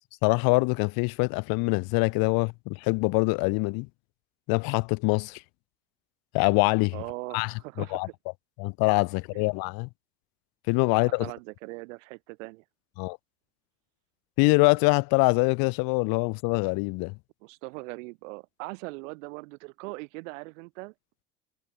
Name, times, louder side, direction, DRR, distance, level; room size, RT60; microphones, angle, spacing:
voice 1, 0.2-3.9 4.5-5.4 6.3-7.0 7.3-8.1 8.6-9.9 10.7-11.3 13.0-13.2 14.4-17.1, left 29 dB, 65° left, 0.7 m, -24 dB
voice 2, 6.9-8.1 9.3-9.4 11.2-12.6 17.4-20.9, right 26 dB, 75° right, 0.6 m, -40 dB
hypercardioid pair, 65°, 39 cm